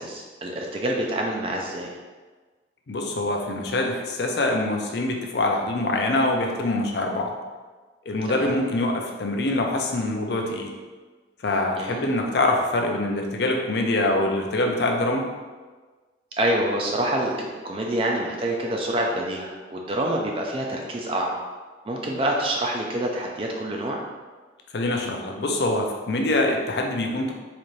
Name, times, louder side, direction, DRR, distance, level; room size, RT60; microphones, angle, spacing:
voice 1, 0.0-1.9 8.3-8.5 11.8-12.0 16.4-21.4 21.9-24.0, right 1 dB, 30° right, 0 dB, 0.4 m, -26 dB
voice 2, 2.9-7.3 8.1-10.7 11.4-15.3 24.7-27.3, left 2 dB, 60° left, 2 dB, 0.5 m, -24 dB
4.0 x 2.5 x 3.1 m, 1.3 s
head